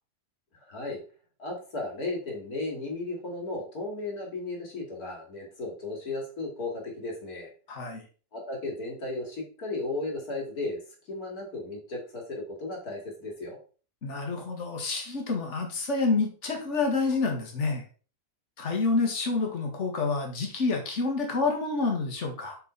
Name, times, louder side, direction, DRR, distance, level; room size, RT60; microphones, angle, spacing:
voice 1, 0.5-1.0 1.4-7.5 8.3-10.8 11.1-13.6, left 2 dB, 75° left, -1 dB, 2.9 m, -35 dB
voice 2, 7.7-8.0 14.0-17.8 18.6-22.6, left 3 dB, 50° left, 2 dB, 1.9 m, -28 dB
6.0 x 5.8 x 4.0 m, 0.38 s
omnidirectional pair, 1.6 m